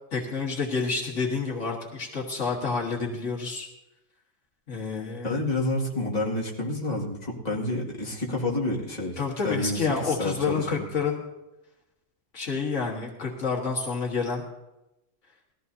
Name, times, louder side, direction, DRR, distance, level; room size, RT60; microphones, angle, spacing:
voice 1, 0.1-3.7 4.7-5.4 9.2-11.2 12.3-14.4, left 4 dB, 75° left, -2 dB, 1.9 m, -29 dB
voice 2, 5.2-9.2 9.4-10.8, left 2 dB, 35° left, -4 dB, 2.3 m, -29 dB
20.0 x 14.5 x 2.8 m, 0.95 s
omnidirectional pair, 1.3 m